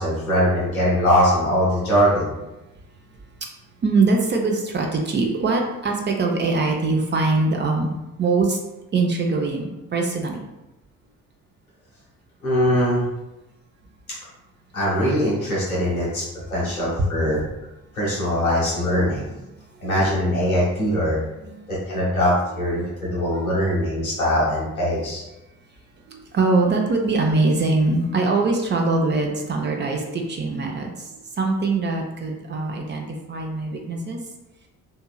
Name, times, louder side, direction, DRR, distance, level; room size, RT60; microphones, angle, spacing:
voice 1, 0.0-2.3 12.4-13.0 14.7-16.2 16.5-17.4 17.9-19.3 19.8-21.2 21.7-25.2, equal, 90° left, -8 dB, 0.8 m, -21 dB
voice 2, 3.8-8.6 8.9-10.4 17.0-17.1 19.5-19.6 21.4-21.6 22.0-22.1 22.8-22.9 23.3-23.4 26.1-34.2, right 3 dB, 25° right, 2 dB, 0.5 m, -22 dB
2.8 x 2.7 x 2.3 m, 0.96 s
figure-of-eight pair, 40°, 41 cm